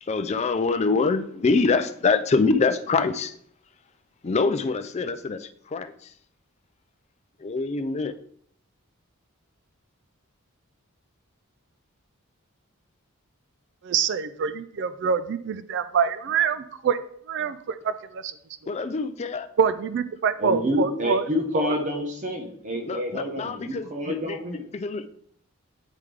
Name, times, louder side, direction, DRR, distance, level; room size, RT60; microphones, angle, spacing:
voice 1, 0.0-3.3 4.2-6.1 7.4-8.1 18.7-19.5 22.9-25.1, left 4 dB, 30° left, 10 dB, 0.4 m, -25 dB
voice 2, 13.8-17.0 17.3-18.3 19.6-21.2 21.5-21.7, right 6 dB, 55° right, 13 dB, 0.3 m, -25 dB
voice 3, 20.4-24.6, equal, 35° right, 3 dB, 0.8 m, -28 dB
9.1 x 3.6 x 3.3 m, 0.65 s
head